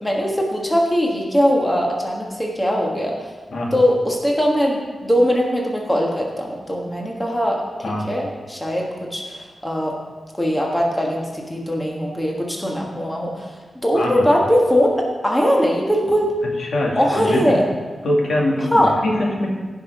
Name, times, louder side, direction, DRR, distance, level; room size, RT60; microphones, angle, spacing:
voice 1, 0.0-3.1 3.7-7.6 8.1-9.9 10.4-13.4 13.8-16.3 17.0-17.6 18.7-18.9, equal, 10° left, -1 dB, 1.4 m, -20 dB
voice 2, 13.9-14.3 16.6-17.6 18.0-19.5, left 1 dB, 80° left, -2 dB, 2.1 m, -23 dB
16.0 x 5.8 x 4.8 m, 1.4 s
wide cardioid pair, 145°, 0 cm